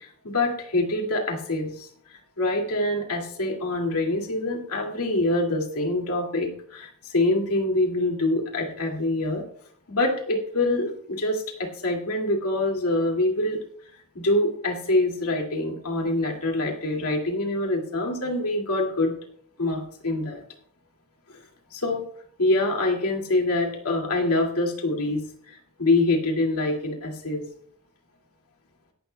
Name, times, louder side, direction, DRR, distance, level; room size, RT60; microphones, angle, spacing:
voice 1, 0.2-1.9 2.4-9.4 9.9-13.6 14.1-19.1 19.6-20.4 21.3-21.4 21.7-22.0 22.4-25.2 25.5-27.4, left 2 dB, 80° left, 1 dB, 2.3 m, -25 dB
17.0 x 12.0 x 2.3 m, 0.62 s
head